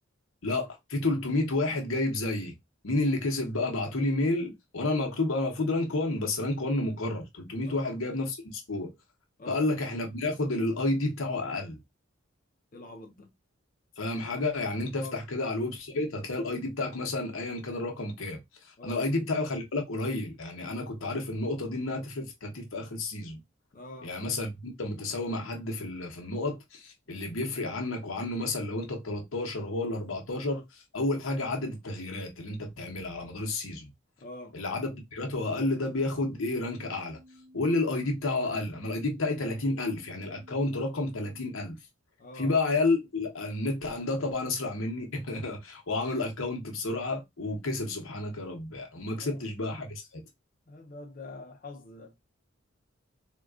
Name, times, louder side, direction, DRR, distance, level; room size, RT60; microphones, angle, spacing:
voice 1, 0.4-2.5 2.8-8.9 9.5-11.8 14.0-23.4 24.0-33.9 34.5-37.2 37.5-41.8 42.3-50.2, left 2 dB, 85° left, 0.9 m, -31 dB
voice 2, 7.6-8.0 9.4-9.6 12.7-13.3 15.0-15.2 18.8-19.1 23.7-24.2 34.2-34.6 42.2-42.5 49.1-49.4 50.7-52.1, left 2 dB, 45° left, 0.6 m, -45 dB
sound 1, 36.0-41.5, left 1 dB, ahead, 0.9 m, -55 dB
3.6 x 2.3 x 2.3 m
head